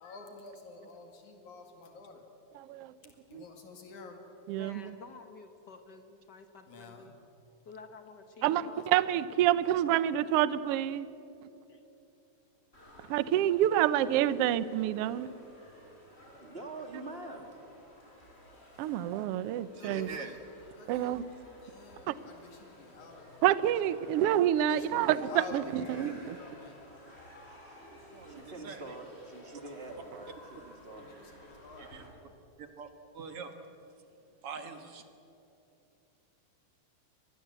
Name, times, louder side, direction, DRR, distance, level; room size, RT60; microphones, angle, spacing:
voice 1, 0.0-2.2 3.3-4.2 6.7-7.1 8.7-9.2 19.8-20.4 20.7-21.3 21.6-23.3 24.6-26.8 31.0-31.9, left 4 dB, 75° left, 4 dB, 3.6 m, -49 dB
voice 2, 2.6-2.9 3.3-3.4 4.5-4.9 8.4-11.1 13.1-15.3 18.8-20.1 20.9-21.2 22.1-22.2 23.4-26.3, right 11 dB, 75° right, 16 dB, 1.4 m, -28 dB
voice 3, 4.6-7.1 7.7-8.9 11.7-11.8, left 4 dB, 50° left, 7 dB, 1.3 m, -50 dB
sound 1, 12.7-32.1, left 1 dB, 20° left, 4.9 m, -55 dB
voice 4, 16.4-17.5 18.4-18.6 28.3-31.2, right 2 dB, 20° right, 4 dB, 2.2 m, -45 dB
voice 5, 19.8-20.3 28.1-28.8 31.9-32.0 32.6-32.9 33.1-33.5 34.4-35.0, right 5 dB, 55° right, 7 dB, 2.1 m, -43 dB
24.0 x 20.0 x 8.1 m, 3.0 s
omnidirectional pair, 3.4 m